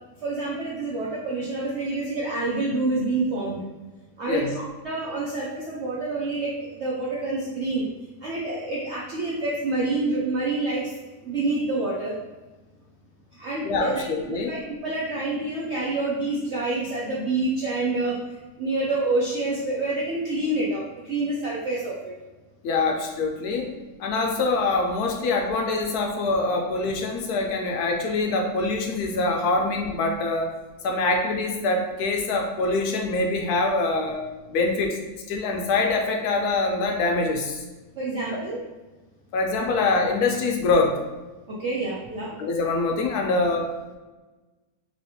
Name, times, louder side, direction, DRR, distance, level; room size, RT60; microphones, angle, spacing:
voice 1, 0.2-3.6 4.2-7.8 8.2-10.9 11.2-12.2 13.4-18.2 18.6-22.1 38.0-38.6 41.6-42.4, right 2 dB, 70° right, -5 dB, 0.6 m, -27 dB
voice 2, 13.6-14.5 22.6-23.7 24.0-30.5 30.8-34.2 34.5-35.0 35.3-37.6 38.3-38.4 39.3-41.0 42.4-44.0, left 3 dB, 75° left, 2 dB, 1.0 m, -24 dB
3.1 x 2.8 x 2.8 m, 1.2 s
omnidirectional pair, 1.7 m